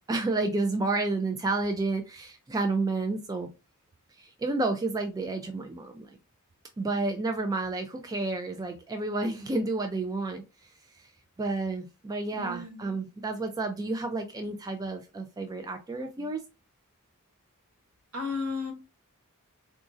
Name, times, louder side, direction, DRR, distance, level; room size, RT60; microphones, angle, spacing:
voice 1, 0.1-3.5 4.2-6.2 6.8-10.7 11.0-11.1 11.4-16.4, right 3 dB, 15° right, 0.3 m, -30 dB
voice 2, 12.3-12.9 18.1-18.7, left 4 dB, 70° right, 1.1 m, -34 dB
3.9 x 2.4 x 2.4 m
head